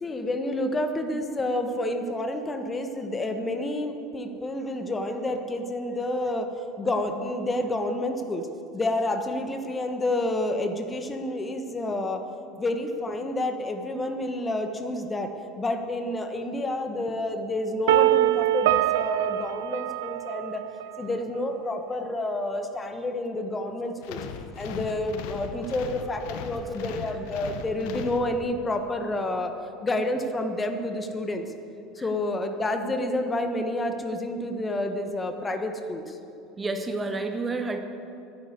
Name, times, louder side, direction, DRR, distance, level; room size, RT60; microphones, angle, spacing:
voice 1, 0.0-6.5 6.8-8.5 8.7-12.2 12.6-15.3 15.6-20.6 21.0-24.2 24.6-29.5 29.8-31.4 31.9-36.2, left 1 dB, 20° left, 6 dB, 1.4 m, -29 dB
sound 1, 17.9-20.8, right 14 dB, 70° right, 0.4 m, -23 dB
sound 2, 24.0-28.8, left 6 dB, 60° left, 0.9 m, -38 dB
voice 2, 36.6-37.8, right 3 dB, 20° right, 6 dB, 1.2 m, -29 dB
12.0 x 10.5 x 8.2 m, 2.6 s
figure-of-eight pair, 70°, 0 cm